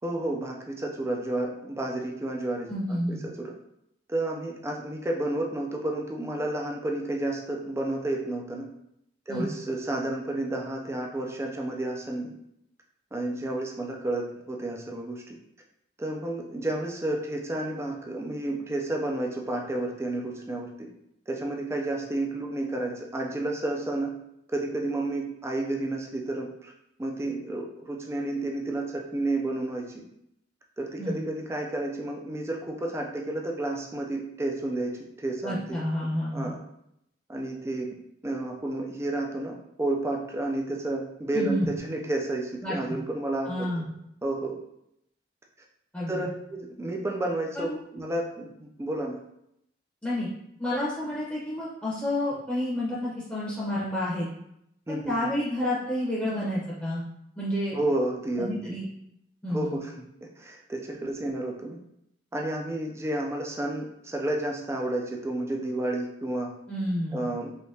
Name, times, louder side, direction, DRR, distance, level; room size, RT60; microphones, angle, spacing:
voice 1, 0.0-3.5 4.1-8.7 9.3-12.3 13.1-15.2 16.0-20.9 21.3-24.1 24.5-26.7 27.0-30.0 30.8-34.9 35.2-36.6 37.3-38.0 38.2-43.7 44.2-44.6 46.1-49.2 54.9-55.4 57.7-58.7 59.5-59.9 60.4-61.8 62.3-66.5 67.1-67.5, right 1 dB, 15° right, 0 dB, 0.4 m, -31 dB
voice 2, 2.7-3.2 9.3-9.5 31.0-31.2 35.4-36.5 41.3-41.7 42.6-43.0 43.4-43.8 45.9-46.3 47.5-47.8 50.0-50.3 50.6-54.3 55.1-57.0 57.4-57.8 58.4-58.9 59.4-59.7 66.7-67.3, left 1 dB, 10° left, -8 dB, 0.8 m, -30 dB
3.4 x 2.8 x 2.7 m, 0.78 s
head